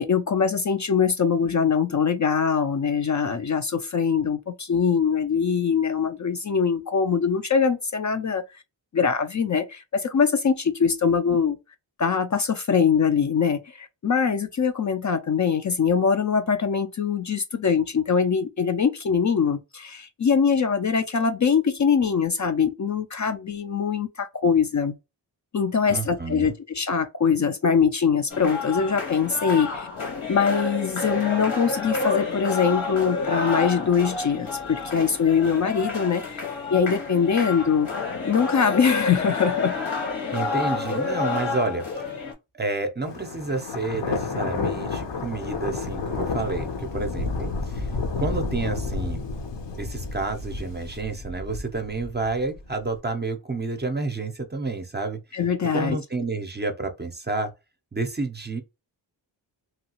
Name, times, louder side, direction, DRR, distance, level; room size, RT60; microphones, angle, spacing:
voice 1, 0.0-8.6 8.9-11.6 12.0-25.0 25.5-29.9 30.3-36.4 36.7-39.8 55.3-56.0, left 6 dB, 40° left, 0.4 m, -23 dB
voice 2, 25.8-26.5 40.3-42.0 42.5-47.9 48.2-49.2 49.8-55.2 55.7-57.5 57.9-58.6, right 3 dB, 20° right, 0.6 m, -30 dB
sound 1, 28.3-42.3, left 4 dB, 80° left, 1.4 m, -29 dB
Thunder, 43.0-52.9, left 4 dB, 65° left, 0.8 m, -31 dB
3.0 x 2.3 x 2.8 m
cardioid pair, 65°, 46 cm